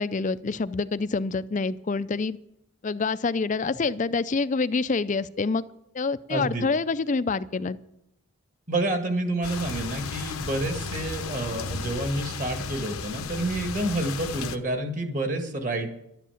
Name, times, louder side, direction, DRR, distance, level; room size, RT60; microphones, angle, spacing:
voice 1, 0.0-2.4 2.8-5.7 5.9-7.8, left 4 dB, 35° left, 15 dB, 0.4 m, -27 dB
voice 2, 6.3-6.6 8.7-15.9, right 1 dB, 35° right, 5 dB, 1.8 m, -29 dB
sound 1, 9.4-14.6, left 4 dB, 85° left, 0.9 m, -34 dB
12.0 x 10.0 x 7.2 m, 0.80 s
head